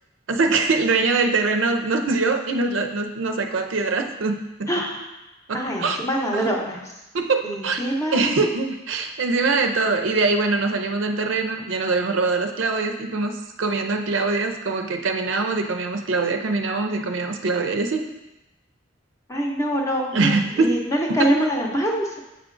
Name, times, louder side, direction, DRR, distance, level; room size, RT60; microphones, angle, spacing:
voice 1, 0.3-4.7 5.5-6.0 6.3-6.5 7.1-7.8 8.1-13.3 13.6-18.1 20.1-20.8 21.2-21.4, right 3 dB, 70° right, 5 dB, 0.5 m, -23 dB
voice 2, 4.7-5.0 5.5-6.8 7.4-8.2 19.3-22.2, equal, 15° left, -1 dB, 0.7 m, -24 dB
8.0 x 4.8 x 2.5 m, 0.99 s
head